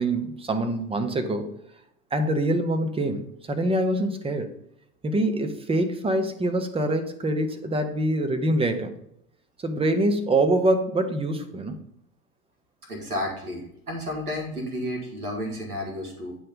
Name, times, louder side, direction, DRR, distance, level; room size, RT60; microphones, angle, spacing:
voice 1, 0.0-1.5 2.1-4.5 5.0-8.9 9.6-11.8, right 1 dB, 15° right, 7 dB, 0.8 m, -25 dB
voice 2, 12.9-16.4, left 1 dB, 85° right, 1 dB, 1.8 m, -32 dB
8.7 x 3.3 x 5.2 m, 0.74 s
figure-of-eight pair, 80°, 44 cm